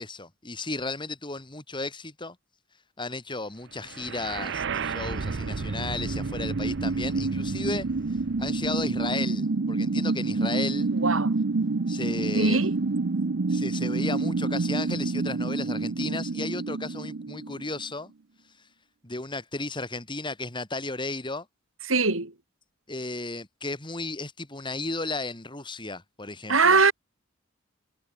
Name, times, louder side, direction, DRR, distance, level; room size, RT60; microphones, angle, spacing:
voice 1, 0.0-2.4 3.0-7.9 8.4-10.9 11.9-12.7 13.5-18.1 19.0-21.5 22.9-26.8, left 2 dB, 25° left, 3.0 m, -34 dB
sound 1, 3.9-17.9, right 3 dB, 60° right, 0.7 m, -28 dB
voice 2, 10.9-11.3 12.4-12.7 21.9-22.3 26.5-26.9, right 4 dB, 85° right, 4.2 m, -21 dB
head